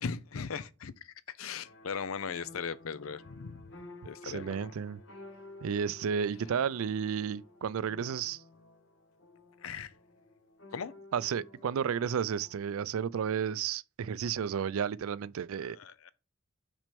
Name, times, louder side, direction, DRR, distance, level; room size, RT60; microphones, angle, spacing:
voice 1, 0.0-3.7 4.0-4.7 9.6-9.9 10.7-10.9 15.6-16.1, left 6 dB, 80° left, 0.6 m, -39 dB
sound 1, 1.6-12.8, left 2 dB, 60° left, 1.3 m, -53 dB
voice 2, 4.2-5.0 5.6-8.4 11.1-15.8, right 7 dB, 80° right, 0.4 m, -32 dB
6.1 x 4.3 x 5.1 m
head